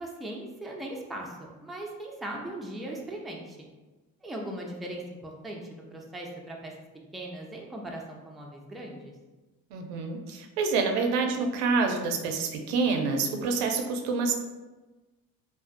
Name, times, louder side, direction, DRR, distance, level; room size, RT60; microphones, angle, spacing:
voice 1, 0.0-3.7 4.2-6.7 7.1-9.1, right 1 dB, ahead, -1 dB, 0.4 m, -39 dB
voice 2, 9.7-14.3, right 4 dB, 85° right, 3 dB, 0.5 m, -27 dB
2.5 x 2.3 x 2.4 m, 1.2 s
supercardioid pair, 65°, 39 cm